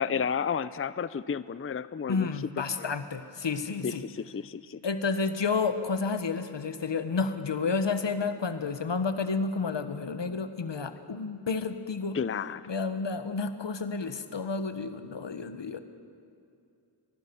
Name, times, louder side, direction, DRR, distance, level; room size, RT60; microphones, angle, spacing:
voice 1, 0.0-2.3 2.8-2.9 3.8-4.8 12.1-12.7, left 7 dB, 30° left, 16 dB, 0.5 m, -32 dB
voice 2, 2.1-4.0 4.8-12.2 12.7-15.8, left 4 dB, 80° left, 10 dB, 1.4 m, -30 dB
24.0 x 20.0 x 7.0 m, 2.5 s
wide cardioid pair, 75°, 43 cm